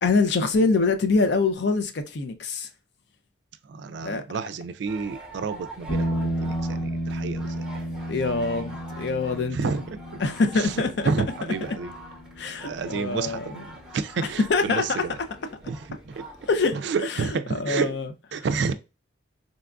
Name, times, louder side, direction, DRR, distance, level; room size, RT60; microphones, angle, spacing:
voice 1, 0.0-2.7 4.0-4.2 8.1-9.7 10.2-11.1 12.4-13.6 14.5-15.1 16.5-18.1 18.3-18.5, left 3 dB, 60° left, 0.4 m, -25 dB
voice 2, 3.7-7.6 9.5-10.0 10.6-10.7 11.0-11.9 12.6-15.2 15.7-16.2 16.7-17.9 18.3-18.7, right 5 dB, 65° right, 0.3 m, -30 dB
sound 1, 4.9-16.7, right 1 dB, 5° right, 0.7 m, -45 dB
sound 2, 5.9-14.2, right 1 dB, 90° left, 0.9 m, -33 dB
3.9 x 2.2 x 2.4 m
head